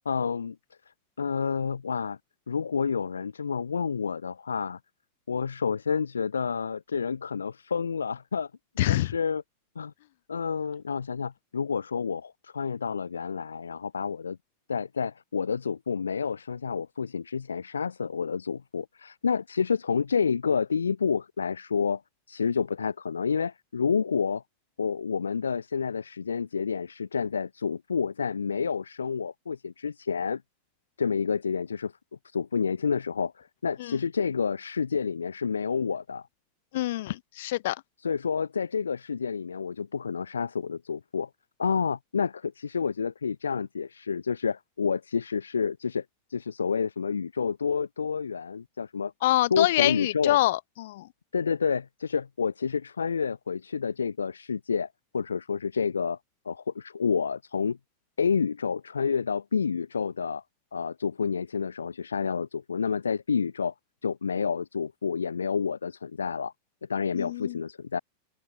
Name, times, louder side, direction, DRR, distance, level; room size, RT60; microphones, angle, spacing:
voice 1, 0.0-0.6 1.2-2.2 2.5-4.8 5.3-8.5 8.9-9.4 9.8-9.9 10.3-14.4 14.7-22.0 22.3-24.4 24.8-30.4 31.0-31.9 32.2-36.3 38.0-41.3 41.6-46.0 46.3-49.1 49.5-50.4 51.3-54.9 55.1-56.2 56.4-57.8 58.2-60.4 60.7-63.7 64.0-66.5 66.9-68.0, left 6 dB, 75° left, 0.7 m, -29 dB
voice 2, 8.8-9.1 33.8-34.0 36.7-37.8 49.2-51.1 67.1-67.6, left 16 dB, 55° left, 3.1 m, -26 dB
open air
figure-of-eight pair, 90°, 0 cm